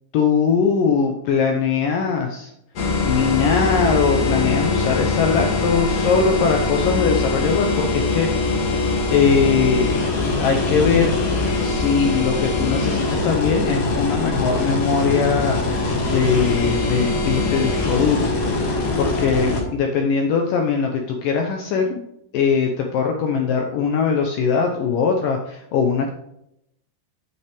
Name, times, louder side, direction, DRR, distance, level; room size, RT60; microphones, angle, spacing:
voice 1, 0.1-2.5 3.0-8.3 9.1-10.0 10.4-11.2 11.6-22.0 22.3-26.1, left 5 dB, 80° left, 3 dB, 1.9 m, -21 dB
sound 1, 2.8-19.6, left 3 dB, 50° left, 2.1 m, -22 dB
8.7 x 7.8 x 3.5 m, 0.78 s
omnidirectional pair, 5.1 m